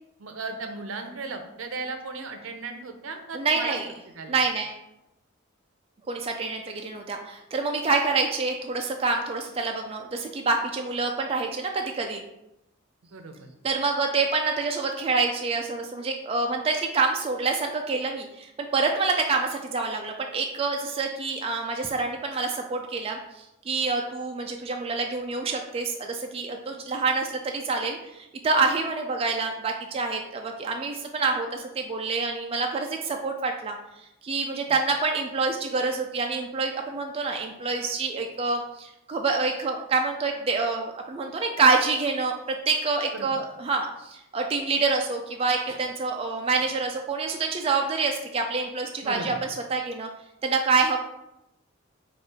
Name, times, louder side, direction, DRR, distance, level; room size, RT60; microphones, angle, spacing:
voice 1, 0.2-3.8 4.1-4.4 13.0-13.5 43.1-43.3 45.7-45.8 49.0-49.4, right 3 dB, 75° right, 6 dB, 0.6 m, -36 dB
voice 2, 3.3-3.9 4.3-4.8 6.1-12.2 13.6-33.8 34.2-50.1 50.4-51.0, right 4 dB, 30° right, 2 dB, 0.3 m, -27 dB
4.4 x 2.4 x 4.8 m, 0.87 s
head